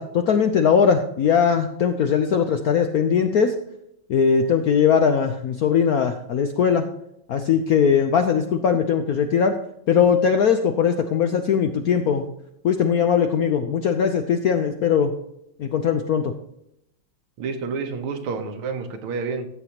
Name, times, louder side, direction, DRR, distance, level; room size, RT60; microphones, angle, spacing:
voice 1, 0.0-3.5 4.1-6.9 7.3-9.6 9.9-12.3 12.6-15.1 15.6-16.3, left 7 dB, 70° left, 6 dB, 0.9 m, -20 dB
voice 2, 17.4-19.5, right 4 dB, 85° right, 6 dB, 1.9 m, -29 dB
15.0 x 7.8 x 2.9 m, 0.79 s
omnidirectional pair, 2.3 m